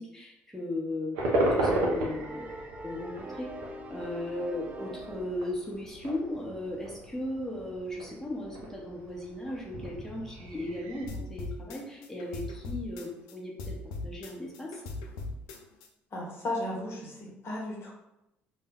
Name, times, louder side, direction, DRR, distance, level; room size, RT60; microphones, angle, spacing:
voice 1, 0.0-2.5 2.8-14.8, left 1 dB, 5° left, -3 dB, 0.7 m, -37 dB
sound 1, 1.1-11.1, right 1 dB, 80° right, 0.5 m, -34 dB
sound 2, 1.5-5.5, right 1 dB, 25° right, 0.3 m, -44 dB
sound 3, 11.1-13.3 13.6-15.9, left 2 dB, 75° left, 0.4 m, -39 dB
voice 2, 16.1-17.9, left 1 dB, 50° left, -3 dB, 0.9 m, -35 dB
2.2 x 2.1 x 3.3 m, 0.89 s
hypercardioid pair, 60°, 6 cm